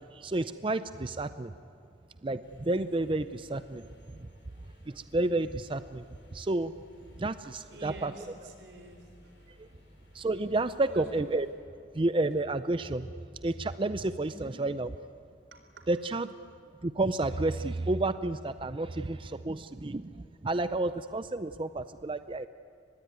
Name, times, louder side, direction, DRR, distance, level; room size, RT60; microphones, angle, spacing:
voice 1, 0.0-1.5 2.2-3.9 4.9-6.0 6.3-6.7 7.2-8.1 9.6-9.7 10.1-11.5 11.9-13.1 13.4-14.9 15.9-16.3 16.8-22.5, right 2 dB, 30° right, 12 dB, 0.5 m, -30 dB
sound 1, 2.4-11.5, left 1 dB, 90° left, 5.6 m, -58 dB
voice 2, 7.4-9.5 10.9-11.1 14.2-14.6 15.5-15.8, right 2 dB, 90° right, 6 dB, 3.9 m, -49 dB
24.5 x 20.5 x 9.6 m, 2.5 s
head